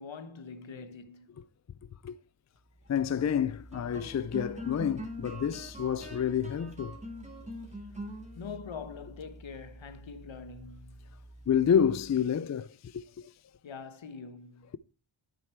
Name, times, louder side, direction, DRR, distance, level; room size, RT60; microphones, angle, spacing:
voice 1, 0.0-1.4 8.4-11.1 13.6-14.7, left 5 dB, 65° left, 1.2 m, -44 dB
sound 1, 2.7-12.3, equal, 15° right, 2.1 m, -45 dB
voice 2, 2.9-7.0 11.5-13.3, left 8 dB, 40° left, 0.4 m, -29 dB
9.3 x 7.9 x 4.4 m
wide cardioid pair, 95°, 49 cm